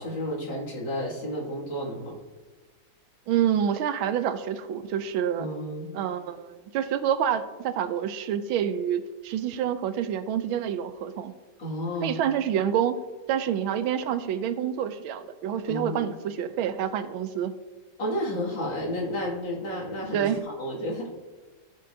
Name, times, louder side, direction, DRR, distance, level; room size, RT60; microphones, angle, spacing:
voice 1, 0.0-2.2 5.4-6.0 11.6-12.2 15.7-16.0 18.0-20.3 20.6-21.2, equal, 75° left, -5 dB, 3.1 m, -31 dB
voice 2, 3.3-5.5 5.9-11.3 12.0-13.0 13.3-17.5 20.1-20.4, right 9 dB, 85° right, 11 dB, 1.4 m, -27 dB
17.0 x 6.6 x 2.8 m, 1.3 s
omnidirectional pair, 2.2 m